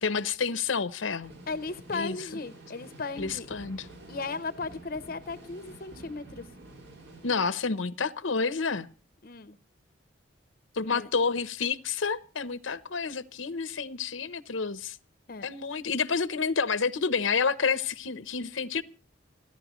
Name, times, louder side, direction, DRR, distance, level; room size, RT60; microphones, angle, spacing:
voice 1, 0.0-1.3 1.9-2.2 3.2-3.9 7.2-8.9 10.7-15.0 15.4-18.8, left 5 dB, 85° left, 0.8 m, -29 dB
sound 1, 1.2-7.4, right 1 dB, 85° right, 5.6 m, -49 dB
voice 2, 1.5-3.5 4.1-6.4 9.2-9.6 10.8-11.1 15.3-15.5, left 3 dB, 50° left, 0.7 m, -36 dB
29.5 x 11.0 x 3.1 m
head